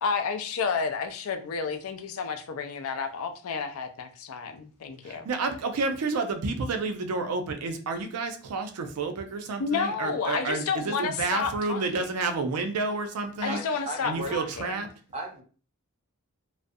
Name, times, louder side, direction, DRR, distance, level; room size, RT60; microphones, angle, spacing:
voice 1, 0.0-5.3 9.6-12.1 13.4-14.7, left 5 dB, 65° left, 6 dB, 0.4 m, -31 dB
voice 2, 5.0-13.6 14.0-14.9, right 3 dB, 85° right, 7 dB, 0.4 m, -30 dB
voice 3, 13.5-14.4 15.1-15.4, right 1 dB, 25° right, 1 dB, 0.5 m, -35 dB
2.4 x 2.0 x 2.5 m, 0.38 s
head